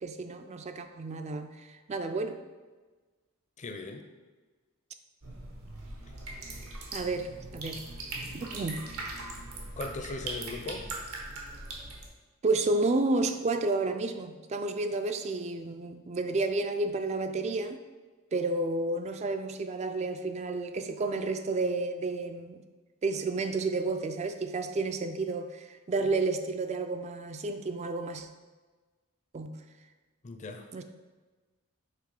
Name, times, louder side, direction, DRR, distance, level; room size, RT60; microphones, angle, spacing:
voice 1, 0.0-2.4 6.5-6.6 6.9-7.9 8.3-8.9 12.4-17.8 18.3-22.6 23.0-28.3 29.3-29.6 30.7-30.8, right 3 dB, 30° right, 8 dB, 0.3 m, -31 dB
voice 2, 3.6-4.1 9.8-10.9 30.2-30.7, left 3 dB, 35° left, 5 dB, 0.5 m, -38 dB
sound 1, 5.2-12.1, right 2 dB, 80° right, 1.1 m, -40 dB
5.9 x 3.5 x 4.8 m, 1.3 s
head